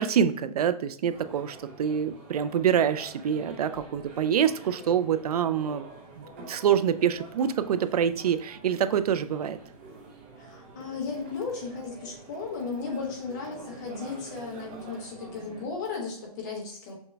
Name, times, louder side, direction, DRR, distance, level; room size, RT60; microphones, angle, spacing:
voice 1, 0.0-5.8 6.2-9.6, right 8 dB, 85° right, 12 dB, 0.4 m, -26 dB
sound 1, 1.1-15.6, right 4 dB, 15° right, 0.4 m, -47 dB
voice 2, 10.4-16.9, left 4 dB, 30° left, -1 dB, 1.2 m, -35 dB
6.0 x 2.2 x 3.3 m, 0.66 s
hypercardioid pair, 175°, 19 cm